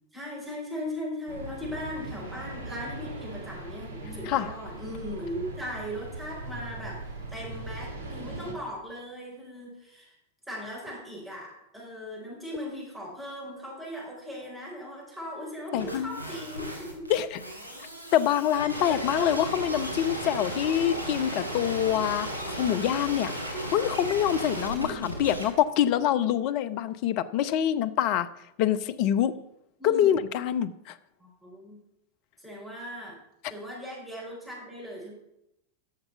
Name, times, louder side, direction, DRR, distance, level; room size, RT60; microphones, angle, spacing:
voice 1, 0.1-7.0 7.3-10.2 10.5-17.1 18.8-19.2 24.7-25.1 29.8-30.2 31.2-31.8 32.4-33.2 33.5-35.1, equal, 10° right, -5 dB, 5.3 m, -38 dB
sound 1, 1.3-8.5, right 2 dB, 60° right, 2.0 m, -40 dB
voice 2, 15.7-16.2 17.1-17.4 18.1-23.3 23.7-28.3 28.6-29.3 29.8-31.0, left 10 dB, 45° left, 12 dB, 0.7 m, -25 dB
sound 2, 15.8-25.4, right 1 dB, 80° right, 3.2 m, -35 dB
11.5 x 6.7 x 5.9 m, 0.82 s
figure-of-eight pair, 90°, 0 cm